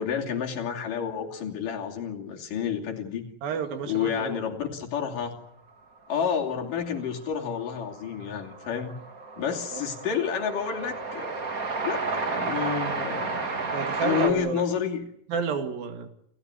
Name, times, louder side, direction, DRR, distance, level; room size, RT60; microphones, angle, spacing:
voice 1, 0.0-3.3 3.9-5.3 6.1-9.0 9.4-11.3 11.8-13.4 14.0-15.0, left 7 dB, 70° left, 1 dB, 4.3 m, -30 dB
voice 2, 3.4-4.4 9.7-9.8 13.7-14.6 15.3-16.1, right 5 dB, 80° right, 8 dB, 4.0 m, -30 dB
Train, 6.9-7.0 7.2-14.3, right 3 dB, 30° right, 2.0 m, -32 dB
28.5 x 15.5 x 9.7 m, 0.73 s
omnidirectional pair, 4.0 m